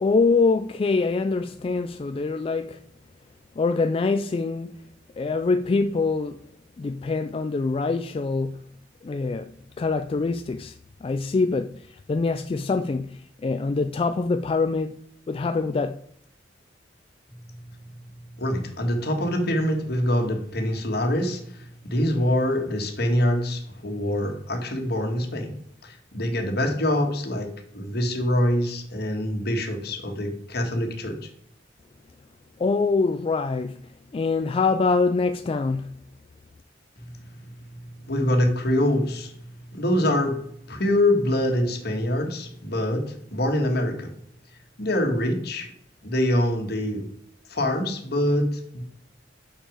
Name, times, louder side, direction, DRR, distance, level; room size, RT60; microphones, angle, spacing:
voice 1, 0.0-2.8 3.6-4.7 5.2-6.4 6.8-8.6 9.0-9.5 9.8-10.8 11.0-15.0 15.3-16.0 32.6-33.8 34.1-36.0, left 4 dB, 30° left, 0.3 m, -24 dB
voice 2, 18.4-25.5 25.8-27.5 27.7-31.1 38.1-39.3 39.7-40.4 40.7-44.1 44.8-45.7 46.0-47.1 47.5-48.8, left 1 dB, 60° left, 1.6 m, -24 dB
6.6 x 6.1 x 5.0 m
head